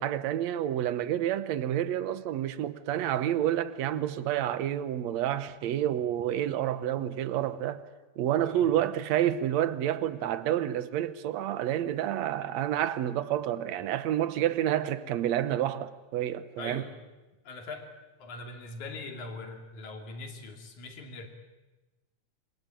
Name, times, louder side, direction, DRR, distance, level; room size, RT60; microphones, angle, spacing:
voice 1, 0.0-7.8 8.2-16.8, right 11 dB, 70° right, 2.3 m, -29 dB
voice 2, 16.6-17.0 17.5-17.9 18.2-21.3, left 3 dB, 85° left, 4.3 m, -41 dB
27.5 x 23.0 x 9.1 m
omnidirectional pair, 3.3 m